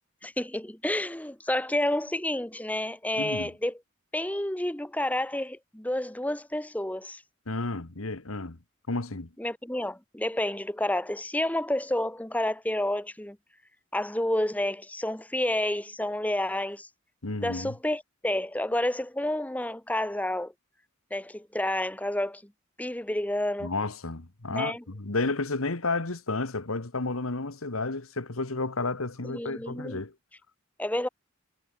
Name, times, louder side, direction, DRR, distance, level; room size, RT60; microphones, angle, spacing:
voice 1, 0.2-3.8 4.1-7.2 9.4-13.4 13.9-16.9 17.4-20.5 21.1-22.4 22.8-23.7 24.5-24.8 29.2-30.0 30.8-31.1, left 1 dB, 5° left, 1.1 m, -30 dB
voice 2, 3.2-3.5 7.5-8.6 8.9-9.3 17.2-17.7 23.6-30.1, left 3 dB, 85° left, 1.7 m, -31 dB
head